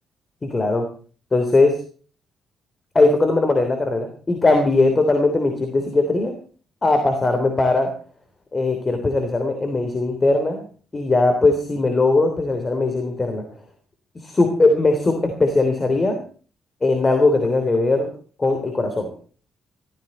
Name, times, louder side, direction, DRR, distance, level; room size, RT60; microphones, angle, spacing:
voice 1, 0.4-0.8 1.3-1.8 2.9-6.3 6.8-7.9 8.5-10.6 10.9-13.4 14.1-16.2 16.8-18.1 18.4-19.1, left 2 dB, 25° left, 6 dB, 3.3 m, -19 dB
15.0 x 15.0 x 4.4 m, 0.40 s
cardioid pair, 90°, 0 cm